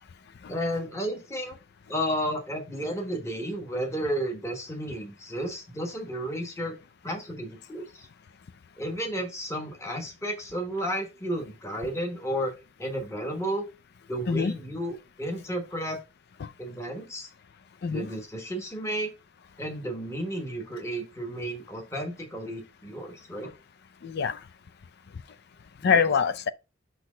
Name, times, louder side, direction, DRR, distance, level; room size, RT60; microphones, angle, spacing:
voice 1, 0.5-1.6 1.9-6.7 7.0-8.1 8.8-12.5 12.8-13.6 14.1-16.0 16.6-17.3 17.9-19.1 19.6-23.5 25.8-26.0, equal, 15° left, 1.2 m, -32 dB
voice 2, 24.0-24.4 25.8-26.5, left 6 dB, 55° left, 0.4 m, -25 dB
6.1 x 3.1 x 4.9 m
head